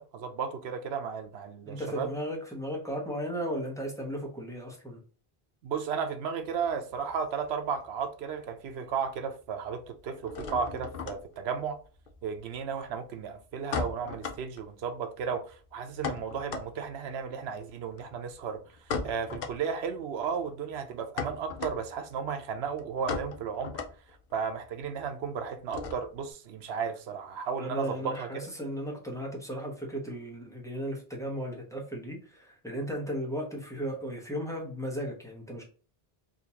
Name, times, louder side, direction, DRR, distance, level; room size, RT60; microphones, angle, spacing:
voice 1, 0.0-2.1 5.6-11.8 12.2-23.7 24.3-28.3, right 6 dB, 85° right, 0.9 m, -34 dB
voice 2, 1.6-5.0 27.6-35.6, equal, 5° left, 1.0 m, -35 dB
sound 1, 6.4-8.1 8.3-9.0 9.3-26.3, left 5 dB, 65° left, 0.8 m, -39 dB
3.7 x 2.8 x 2.8 m
omnidirectional pair, 1.0 m